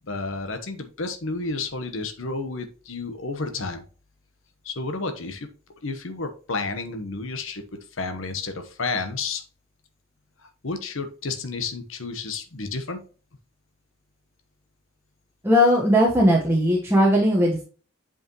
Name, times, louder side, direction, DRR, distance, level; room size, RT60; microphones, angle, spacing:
voice 1, 0.1-3.8 4.6-5.5 5.8-7.6 7.9-9.4 10.4-13.0, left 3 dB, 70° left, 7 dB, 1.0 m, -31 dB
voice 2, 15.4-17.6, equal, 10° right, -3 dB, 1.1 m, -18 dB
8.1 x 5.0 x 2.9 m, 0.37 s
head